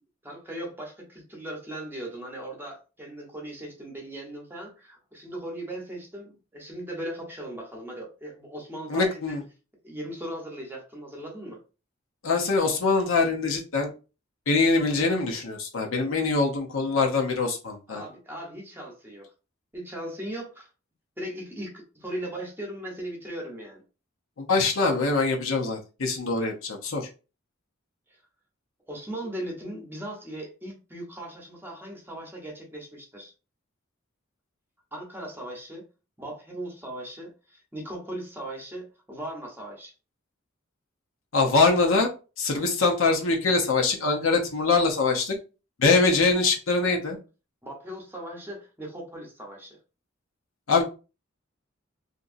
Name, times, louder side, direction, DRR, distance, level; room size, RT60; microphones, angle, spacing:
voice 1, 0.2-9.4 9.8-11.6 17.9-19.3 19.7-20.7 21.2-23.8 28.1-28.2 28.9-33.3 34.9-35.8 36.2-39.9 47.6-49.8, right 1 dB, 10° right, -1 dB, 0.8 m, -38 dB
voice 2, 8.9-9.4 12.2-13.9 14.5-18.0 24.4-27.0 41.3-42.1 42.4-45.4 45.8-47.2 50.7-50.8, left 3 dB, 75° left, 2 dB, 0.7 m, -23 dB
2.9 x 2.6 x 2.5 m, 0.32 s
head